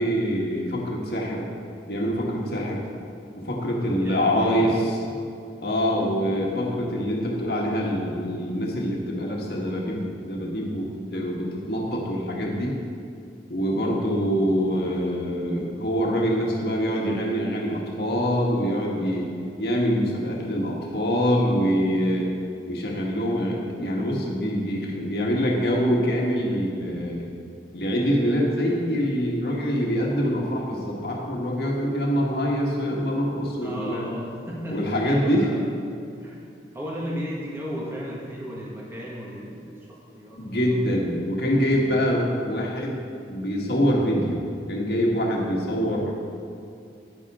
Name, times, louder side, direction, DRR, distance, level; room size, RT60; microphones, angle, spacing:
voice 1, 0.0-1.5 1.9-2.8 3.3-5.0 5.6-12.8 13.5-19.3 19.6-22.3 22.7-27.3 27.7-34.0 34.7-35.5 40.4-43.0 43.3-44.4 44.7-46.1, equal, 60° left, -2 dB, 1.6 m, -25 dB
voice 2, 4.0-4.8 5.2-5.3 33.6-35.6 36.2-36.4 36.7-40.8, equal, 15° right, -5 dB, 1.8 m, -35 dB
10.0 x 9.7 x 3.8 m, 2.5 s
head